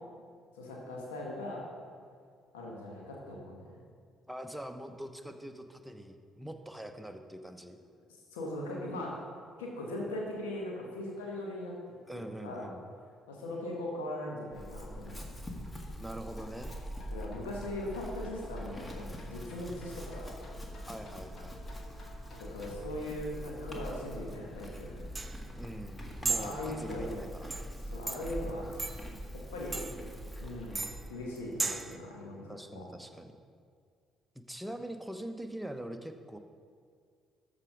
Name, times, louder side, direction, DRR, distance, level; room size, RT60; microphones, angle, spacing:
voice 1, 0.5-1.6 2.5-3.6 8.3-9.1 9.6-11.8 12.4-12.7 13.3-15.2 17.1-20.4 22.4-25.1 26.3-27.2 27.9-28.9 29.5-29.9 30.4-30.8 31.1-32.9, left 1 dB, 80° left, -2 dB, 1.8 m, -39 dB
voice 2, 4.3-7.8 12.1-12.8 16.0-16.8 20.9-21.6 25.6-27.6 32.5-33.3 34.5-36.4, right 1 dB, 5° right, 6 dB, 0.9 m, -43 dB
Chewing mastication / Livestock farm animals working animals, 14.5-31.1, equal, 20° left, 1.8 m, -43 dB
sound 1, 16.3-22.8, left 2 dB, 50° left, 1.7 m, -54 dB
sound 2, 24.6-32.0, right 3 dB, 30° right, 0.6 m, -38 dB
13.5 x 5.1 x 5.1 m, 2.1 s
hypercardioid pair, 50°, 0 cm